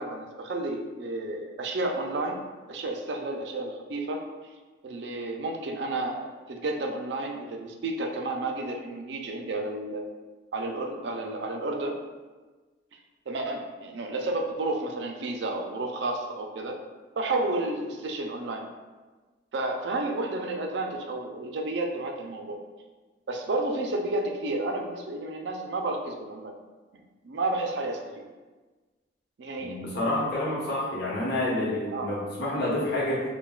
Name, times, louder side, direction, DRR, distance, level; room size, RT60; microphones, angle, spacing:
voice 1, 0.0-2.4 2.7-4.2 4.8-10.0 10.5-12.0 13.3-16.8 17.2-18.7 19.5-22.6 23.3-26.5 26.9-28.2 29.4-29.8 31.9-32.1, right 2 dB, 65° right, 2 dB, 0.4 m, -31 dB
voice 2, 29.6-33.2, left 1 dB, 60° left, -6 dB, 1.1 m, -28 dB
5.6 x 2.2 x 2.3 m, 1.3 s
head